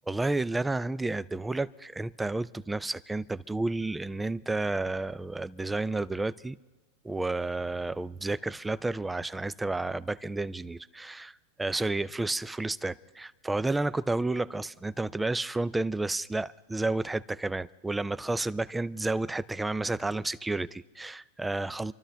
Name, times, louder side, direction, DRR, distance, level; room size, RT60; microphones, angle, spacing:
voice 1, 0.1-6.6 7.0-11.3 11.6-21.9, right 2 dB, 10° right, 0.4 m, -31 dB
26.5 x 12.5 x 3.4 m
hypercardioid pair, 115°, 0 cm